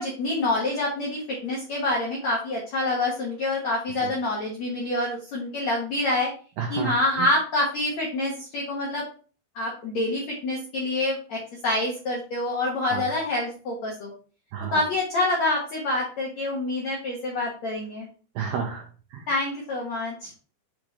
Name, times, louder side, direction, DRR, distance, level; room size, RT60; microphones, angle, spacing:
voice 1, 0.0-6.3 6.7-9.1 9.6-14.1 14.7-18.1 19.3-20.3, left 2 dB, 65° left, -2 dB, 1.8 m, -27 dB
voice 2, 6.6-6.9 7.2-7.3 12.9-13.0 14.5-14.8 18.4-18.9 19.1-19.3, right 7 dB, 80° right, 2 dB, 2.1 m, -30 dB
7.9 x 5.1 x 3.1 m, 0.39 s
omnidirectional pair, 5.4 m